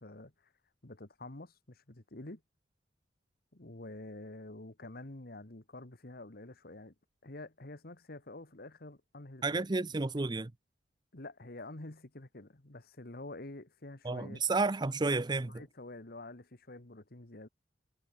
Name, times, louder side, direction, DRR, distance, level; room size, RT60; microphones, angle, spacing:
voice 1, 0.0-0.5 0.8-2.4 3.5-6.9 7.2-9.7 11.1-14.4 15.5-17.5, left 2 dB, 55° left, 1.8 m, -48 dB
voice 2, 9.4-10.5 14.0-15.6, right 3 dB, 25° right, 0.6 m, -31 dB
head